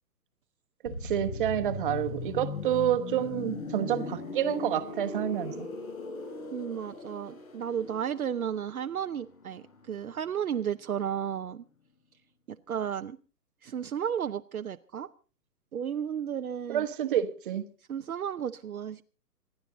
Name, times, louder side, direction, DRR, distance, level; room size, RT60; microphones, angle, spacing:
voice 1, 0.8-5.7 16.7-17.7, right 11 dB, 30° right, 1.2 m, -29 dB
sound 1, 0.9-10.5 10.8-11.0, left 3 dB, 55° left, 5.3 m, -39 dB
voice 2, 6.5-11.6 12.5-13.2 13.6-15.1 15.7-16.9 17.9-19.0, right 8 dB, 60° right, 0.7 m, -33 dB
26.5 x 11.0 x 4.0 m
figure-of-eight pair, 135°, 49 cm